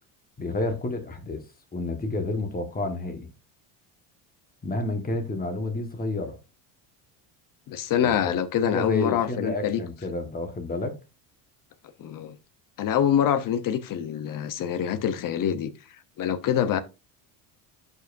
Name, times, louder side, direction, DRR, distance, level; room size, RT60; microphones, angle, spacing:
voice 1, 0.4-1.4 1.7-3.3 4.6-6.4 8.0-10.9, left 2 dB, 20° left, 1.6 m, -30 dB
voice 2, 7.7-9.8 12.0-12.4 12.8-15.7 16.2-16.8, left 9 dB, 45° left, 0.9 m, -25 dB
11.0 x 5.4 x 2.7 m
cardioid pair, 140°, 47 cm